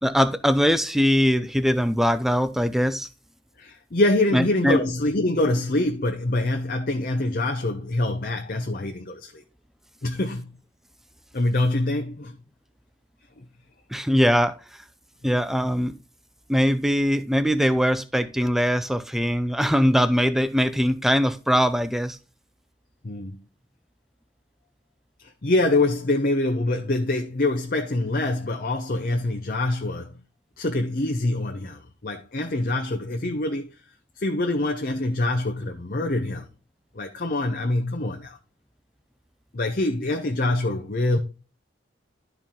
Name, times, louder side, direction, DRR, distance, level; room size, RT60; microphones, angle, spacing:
voice 1, 0.0-3.1 4.3-4.8 13.9-14.8 15.2-15.9 16.5-22.2, equal, ahead, 0.4 m, -21 dB
voice 2, 3.6-9.4 10.0-10.6 11.3-12.4 13.4-13.5 23.0-23.4 25.2-30.2 30.6-33.7 34.2-36.5 36.9-38.4 39.5-41.2, left 2 dB, 45° left, 0.7 m, -25 dB
12.0 x 4.5 x 3.7 m
head